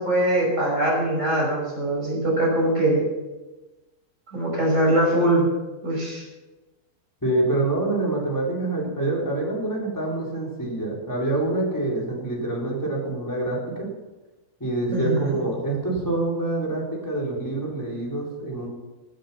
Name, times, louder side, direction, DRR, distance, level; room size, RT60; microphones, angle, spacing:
voice 1, 0.0-3.1 4.3-5.5 5.8-6.2 14.9-15.3, right 1 dB, 50° right, -3 dB, 6.1 m, -22 dB
voice 2, 7.2-13.9 14.6-18.7, right 2 dB, 10° left, -4 dB, 4.2 m, -26 dB
17.0 x 9.1 x 5.8 m, 1.1 s
omnidirectional pair, 1.7 m